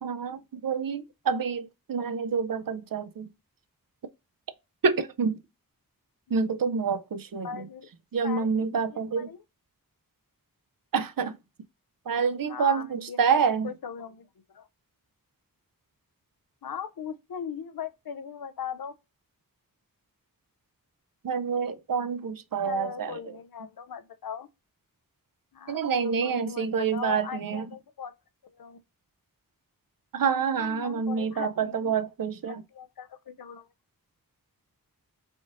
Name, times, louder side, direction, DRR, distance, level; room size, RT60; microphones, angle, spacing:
voice 1, 0.0-3.3 4.8-5.4 6.3-7.7 8.1-9.3 10.9-11.4 12.1-13.7 21.2-23.2 25.7-27.7 30.1-32.6, right 6 dB, 70° right, 0.5 m, -27 dB
voice 2, 7.4-7.9 8.2-8.6 8.9-9.4 12.5-13.2 13.6-14.7 16.6-18.9 22.7-24.5 25.5-28.1 28.4-28.8 30.6-31.9 32.5-33.7, left 7 dB, 80° left, 0.5 m, -39 dB
3.5 x 2.5 x 3.7 m
wide cardioid pair, 50°, 35 cm